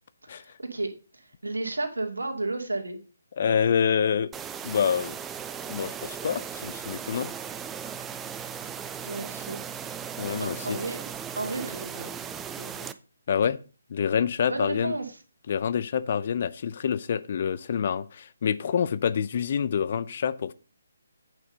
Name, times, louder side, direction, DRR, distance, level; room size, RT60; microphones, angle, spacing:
voice 1, 0.2-3.0 9.0-9.6 10.4-11.0 11.4-12.1 12.6-12.9 14.4-15.2, right 2 dB, 75° right, 2.5 m, -33 dB
voice 2, 3.4-4.3 4.6-5.1 5.7-7.3 10.2-10.8 13.3-13.6 13.9-14.9 15.5-20.5, left 7 dB, 45° left, 0.6 m, -27 dB
sound 1, 4.3-12.9, right 7 dB, 10° right, 0.5 m, -37 dB
8.8 x 6.1 x 5.3 m
figure-of-eight pair, 145°, 0 cm